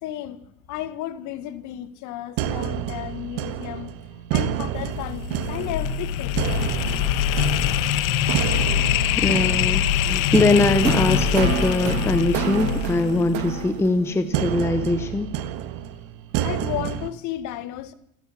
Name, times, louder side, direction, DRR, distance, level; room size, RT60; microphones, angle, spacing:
voice 1, 0.0-3.9 4.3-6.4 16.4-17.9, left 13 dB, 45° left, 2.0 m, -33 dB
sound 1, 2.4-17.1, right 11 dB, 50° right, 1.7 m, -29 dB
sound 2, 4.8-13.9, left 10 dB, 70° left, 1.7 m, -24 dB
voice 2, 9.2-15.3, left 2 dB, 5° left, 0.9 m, -22 dB
28.5 x 13.0 x 7.4 m
supercardioid pair, 160°, 43 cm